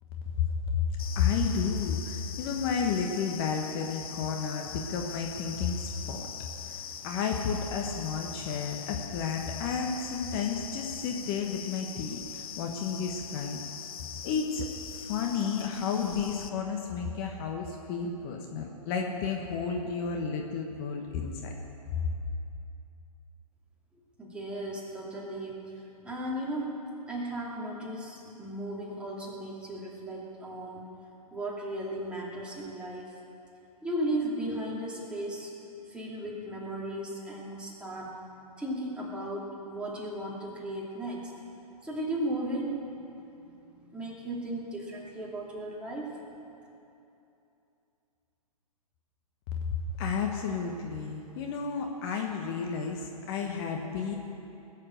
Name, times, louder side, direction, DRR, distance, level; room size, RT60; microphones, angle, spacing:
voice 1, 0.7-6.3 6.6-13.6 14.2-14.7 14.9-21.5 21.9-22.1 49.7-54.1, left 6 dB, 40° left, 2 dB, 1.4 m, -32 dB
sound 1, 1.0-16.5, left 8 dB, 65° left, 1.0 m, -42 dB
voice 2, 24.2-25.7 26.0-26.8 27.1-30.9 31.3-33.1 33.8-35.5 35.9-38.2 38.6-41.3 41.8-43.0 43.3-46.2, right 1 dB, 5° right, -5 dB, 2.7 m, -36 dB
20.0 x 7.5 x 7.7 m, 2.8 s
hypercardioid pair, 130°, 20 cm